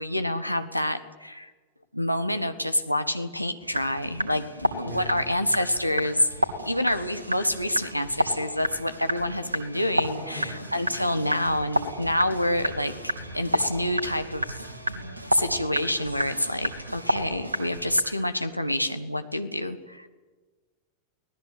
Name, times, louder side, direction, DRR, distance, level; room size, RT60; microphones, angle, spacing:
voice 1, 0.0-1.5 1.9-6.3 6.6-14.7 15.3-20.1, left 1 dB, 90° left, 9 dB, 1.5 m, -27 dB
sound 1, 3.6-18.0, equal, 80° right, 2.4 m, -31 dB
voice 2, 4.8-5.2 10.1-10.6, left 1 dB, 30° right, 3 dB, 6.4 m, -40 dB
24.5 x 18.5 x 8.4 m, 1.4 s
figure-of-eight pair, 90°, 0 cm